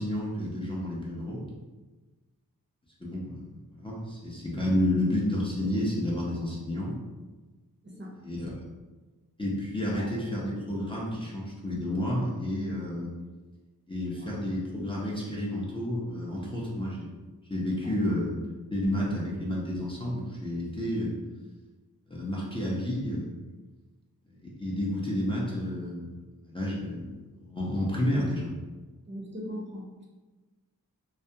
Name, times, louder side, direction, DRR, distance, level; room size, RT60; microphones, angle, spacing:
voice 1, 0.0-1.4 3.0-6.9 8.1-8.5 9.4-13.1 13.9-17.1 17.5-18.4 18.7-21.1 22.1-23.4 24.3-26.1 26.4-27.0 27.4-28.6, left 1 dB, 15° left, -6 dB, 0.5 m, -30 dB
voice 2, 29.1-29.8, equal, 30° right, -4 dB, 0.6 m, -39 dB
2.4 x 2.2 x 2.7 m, 1.3 s
wide cardioid pair, 50°, 36 cm